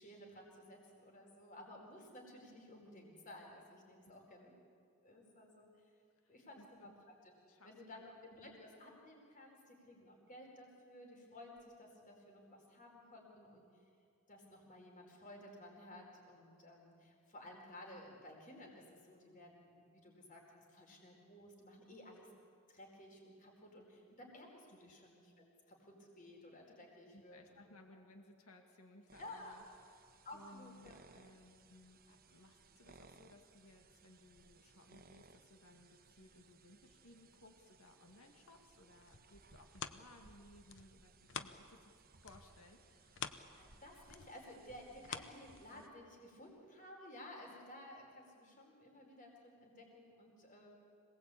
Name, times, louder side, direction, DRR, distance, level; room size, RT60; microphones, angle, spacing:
voice 1, 0.0-4.5 5.0-5.9 6.3-6.9 7.2-7.3 7.6-13.8 14.3-22.3 22.7-27.6 29.2-29.6 30.2-31.0 43.3-50.7, left 1 dB, 40° left, 0 dB, 4.6 m, -55 dB
voice 2, 6.2-6.9 7.5-8.0 24.8-24.9 27.1-29.6 30.3-42.0 42.2-43.2, left 1 dB, 80° left, 4 dB, 2.3 m, -62 dB
sound 1, 29.1-45.9, right 3 dB, 45° right, 1.2 m, -65 dB
sound 2, 39.0-41.9 42.2-46.0 46.5-46.6, left 7 dB, 55° left, 0.9 m, -49 dB
26.0 x 19.5 x 8.6 m, 2.4 s
head